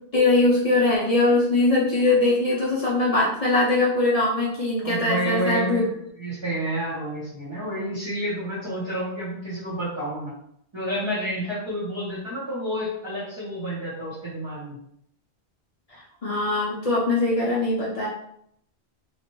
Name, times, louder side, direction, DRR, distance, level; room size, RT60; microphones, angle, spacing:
voice 1, 0.1-5.8 15.9-18.1, left 2 dB, 40° left, -5 dB, 0.6 m, -21 dB
voice 2, 4.8-5.9 6.2-10.3 10.7-14.8, equal, 25° right, -10 dB, 1.0 m, -29 dB
2.9 x 2.5 x 3.0 m, 0.70 s
omnidirectional pair, 1.1 m